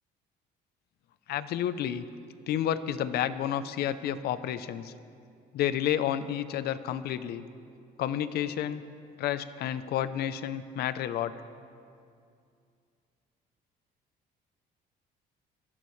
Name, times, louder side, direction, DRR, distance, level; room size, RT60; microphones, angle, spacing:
voice 1, 1.3-2.0 2.5-4.9 5.5-7.4 8.0-8.8 9.2-11.3, left 10 dB, 70° left, 13 dB, 0.7 m, -30 dB
22.0 x 15.5 x 3.3 m, 2.4 s
cardioid pair, 110°, 17 cm